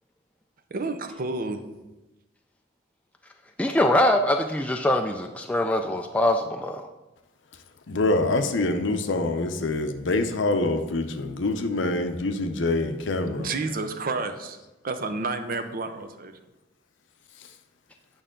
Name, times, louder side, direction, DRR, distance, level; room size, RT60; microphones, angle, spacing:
voice 1, 0.7-1.6 13.4-14.6 14.8-16.3, right 3 dB, 45° right, 0.6 m, -30 dB
voice 2, 3.6-6.9, left 1 dB, 5° left, 0.3 m, -23 dB
voice 3, 7.9-13.5, left 2 dB, 70° left, 0.7 m, -25 dB
8.9 x 5.5 x 3.7 m
head